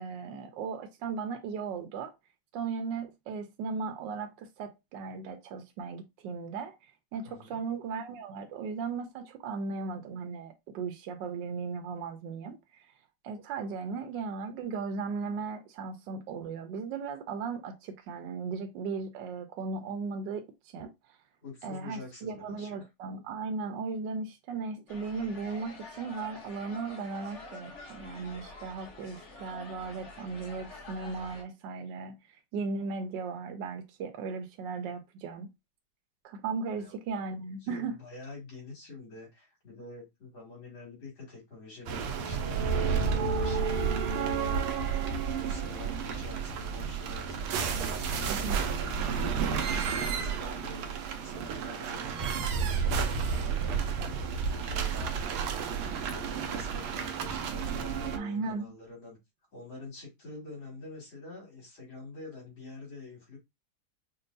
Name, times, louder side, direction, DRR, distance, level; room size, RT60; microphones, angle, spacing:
voice 1, 0.0-2.1 2.5-6.7 7.1-12.9 13.2-20.4 20.7-20.9 21.6-32.2 32.5-35.5 36.2-38.0 48.3-48.6 58.1-58.7, right 4 dB, 70° right, 1.2 m, -36 dB
voice 2, 7.2-7.6 21.4-22.7 36.7-36.9 37.6-42.6 42.9-47.4 48.0-49.3 49.6-54.0 54.5-55.7 56.0-59.2 59.5-63.4, left 3 dB, 70° left, 3.0 m, -47 dB
sound 1, 24.9-31.4, left 3 dB, 45° left, 1.1 m, -47 dB
sound 2, 41.9-58.2, right 6 dB, 90° right, 1.5 m, -31 dB
5.4 x 2.3 x 2.6 m
omnidirectional pair, 2.2 m